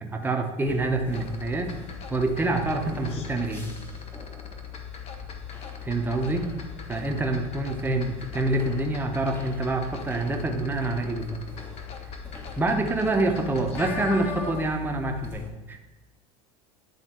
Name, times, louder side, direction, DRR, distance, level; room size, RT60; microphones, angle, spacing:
voice 1, 0.0-1.7 2.1-3.7 5.8-6.5 6.9-11.4 12.6-15.8, right 2 dB, 10° right, 3 dB, 0.9 m, -26 dB
sound 1, 0.7-15.5, left 7 dB, 15° left, 1.0 m, -41 dB
sound 2, 1.1-14.9 15.2-15.3, left 3 dB, 40° left, 0.9 m, -42 dB
9.9 x 3.6 x 4.3 m, 1.1 s
supercardioid pair, 120°, 16 cm